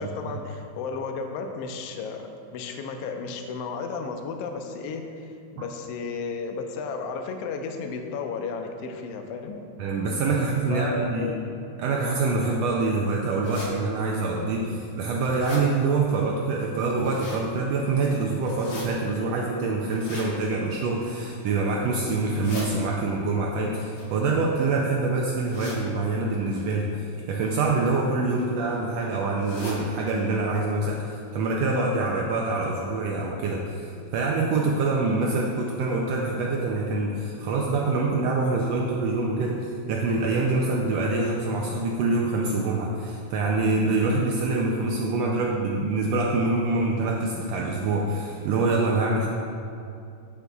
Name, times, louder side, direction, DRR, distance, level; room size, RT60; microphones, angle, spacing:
voice 1, 0.0-5.0 5.6-9.6 10.7-11.4, left 4 dB, 80° left, 5 dB, 1.4 m, -33 dB
voice 2, 9.8-11.3 11.8-49.3, right 3 dB, 80° right, -1 dB, 1.5 m, -25 dB
sound 1, 13.4-13.7 14.3-14.4 14.9-15.6 16.8-17.4 18.4-18.9 19.9-20.3 21.0-21.4 22.2-22.7 23.8-24.8 25.5-25.8 26.5-26.7 27.7-28.0 28.4-28.5 28.7-28.8 29.4-29.8 30.2-30.3 30.6-30.7 31.3-31.4 31.7-31.8, left 1 dB, 50° left, 1.7 m, -39 dB
9.1 x 8.2 x 2.4 m, 2.5 s
omnidirectional pair, 3.4 m